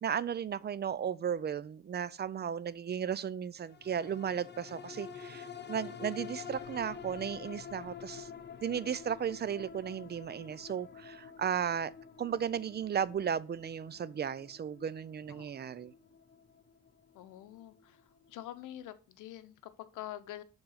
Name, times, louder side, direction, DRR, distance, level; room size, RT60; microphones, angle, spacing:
voice 1, 0.0-8.3 8.6-11.9 12.2-15.9, right 8 dB, 35° right, 0.4 m, -35 dB
sound 1, 3.7-18.4 18.8-18.9, left 7 dB, 35° left, 0.8 m, -48 dB
voice 2, 6.0-6.3 15.3-15.5 17.1-18.0 18.3-20.4, left 13 dB, 85° left, 0.8 m, -46 dB
6.8 x 3.9 x 5.7 m
cardioid pair, 90°, 30 cm